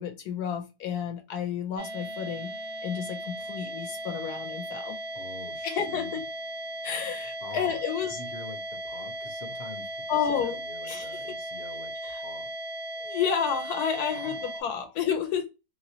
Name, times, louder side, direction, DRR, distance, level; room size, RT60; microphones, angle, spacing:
voice 1, 0.0-2.5 2.8-5.0 5.6-6.2 6.8-8.2 10.1-10.6 10.8-11.4 12.0-12.2 13.0-15.5, left 8 dB, 75° left, 1.0 m, -31 dB
sound 1, 1.8-14.6, right 1 dB, 80° right, 0.3 m, -37 dB
voice 2, 5.1-6.2 7.4-7.8 8.2-12.5 14.1-14.9, left 4 dB, 50° left, 0.8 m, -45 dB
3.0 x 2.9 x 2.7 m
omnidirectional pair, 1.8 m